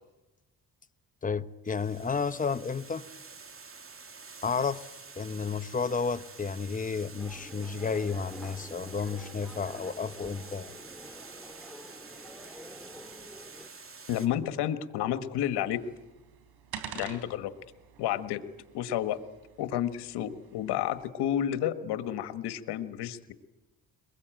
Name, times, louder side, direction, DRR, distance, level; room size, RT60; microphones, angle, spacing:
voice 1, 1.2-3.0 4.4-4.9 5.2-10.7, left 5 dB, 20° left, 0.9 m, -32 dB
Water, 1.7-14.3, right 4 dB, 35° right, 2.7 m, -48 dB
sound 1, 7.2-13.7, equal, ahead, 2.0 m, -48 dB
voice 2, 14.1-15.8 16.9-17.5 18.0-18.4 18.7-19.2 19.6-23.3, left 11 dB, 85° left, 1.5 m, -31 dB
sound 2, 15.6-21.1, right 8 dB, 80° right, 3.7 m, -47 dB
22.5 x 21.5 x 9.1 m
cardioid pair, 85°, 39 cm